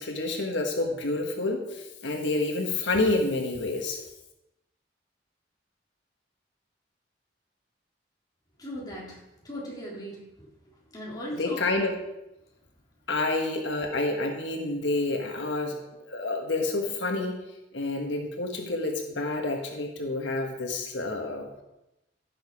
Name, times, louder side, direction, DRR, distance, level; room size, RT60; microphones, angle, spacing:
voice 1, 0.0-4.0 11.4-11.9 13.1-17.4 17.7-21.5, left 2 dB, 85° left, 3 dB, 1.4 m, -28 dB
voice 2, 8.6-11.7, equal, 20° left, -4 dB, 3.6 m, -38 dB
16.0 x 6.5 x 4.9 m, 0.93 s
head